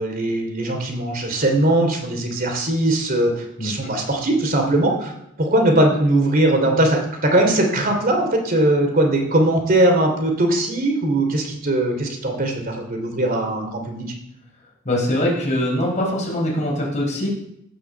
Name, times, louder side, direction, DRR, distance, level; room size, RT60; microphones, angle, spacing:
voice 1, 0.0-5.1 5.4-14.1, right 1 dB, 40° right, 3 dB, 2.9 m, -20 dB
voice 2, 3.6-3.9 14.8-17.3, left 1 dB, 35° left, -2 dB, 4.5 m, -22 dB
16.0 x 6.2 x 6.7 m, 0.77 s
head